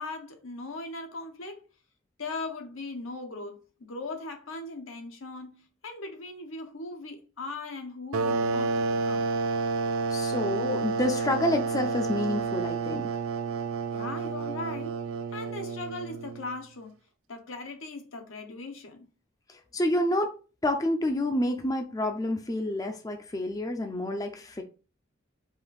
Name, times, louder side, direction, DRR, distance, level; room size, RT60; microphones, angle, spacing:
voice 1, 0.0-1.6 2.2-9.3 13.9-17.0 17.3-19.1, left 3 dB, 85° left, 1.1 m, -39 dB
sound 1, 8.1-16.5, right 4 dB, 90° right, 0.4 m, -30 dB
voice 2, 10.1-13.1 19.5-20.3 20.6-24.6, left 1 dB, 20° left, 0.4 m, -28 dB
4.8 x 2.6 x 4.0 m
head